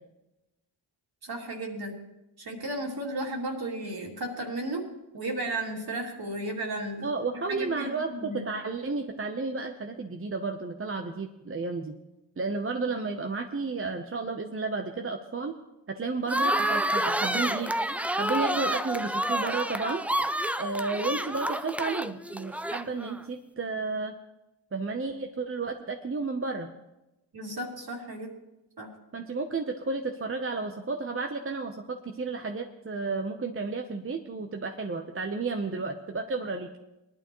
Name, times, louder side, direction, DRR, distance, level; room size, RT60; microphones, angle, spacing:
voice 1, 1.2-2.0 2.4-4.9 5.1-8.4 27.3-28.3 28.8-28.9, right 1 dB, 55° right, 0 dB, 2.8 m, -34 dB
voice 2, 7.0-11.9 12.4-15.6 15.9-17.7 18.2-20.0 20.6-24.1 24.7-26.7 29.1-36.7, right 3 dB, 30° right, 4 dB, 0.8 m, -32 dB
sound 1, 16.3-23.2, right 1 dB, 5° right, 0.3 m, -29 dB
19.0 x 11.5 x 3.1 m, 0.96 s
cardioid pair, 75°, 44 cm